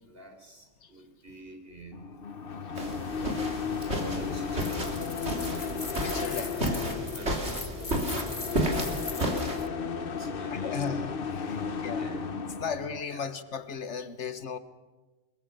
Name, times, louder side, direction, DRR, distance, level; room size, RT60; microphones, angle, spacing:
voice 1, 0.0-2.3 3.8-4.9 5.5-5.7 6.3-9.3 9.9-11.0 11.5-12.2 13.1-13.3, right 2 dB, 55° right, 4.4 m, -47 dB
sound 1, 1.9-13.0, left 6 dB, 55° left, 1.1 m, -35 dB
sound 2, 2.8-9.6, right 1 dB, 70° right, 3.7 m, -32 dB
sound 3, 4.6-9.7, left 4 dB, 25° left, 0.7 m, -42 dB
voice 2, 5.9-6.5 10.5-12.1 12.6-14.6, left 6 dB, 80° left, 1.5 m, -36 dB
24.0 x 22.5 x 6.9 m
omnidirectional pair, 1.2 m